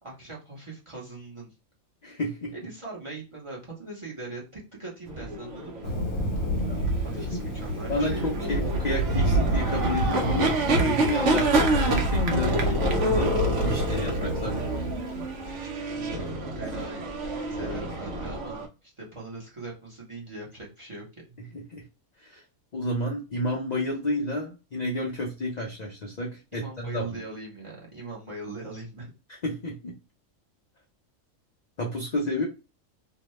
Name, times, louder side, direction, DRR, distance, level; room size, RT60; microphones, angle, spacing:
voice 1, 0.0-1.5 2.5-5.9 7.0-8.4 15.9-17.0 17.5-21.2 26.5-29.1, right 2 dB, 25° right, -5 dB, 0.8 m, -40 dB
voice 2, 2.0-2.5 6.7-6.9 7.9-13.3 13.6-14.6 21.5-21.8 22.2-22.4 22.7-27.2 29.3-29.9 31.8-32.4, left 1 dB, 55° left, -1 dB, 0.5 m, -31 dB
sound 1, 5.1-18.7, right 2 dB, 65° right, 0.9 m, -28 dB
Thunder, 5.8-15.5, right 1 dB, 75° left, 1.2 m, -28 dB
2.7 x 2.1 x 3.0 m, 0.30 s
omnidirectional pair, 1.4 m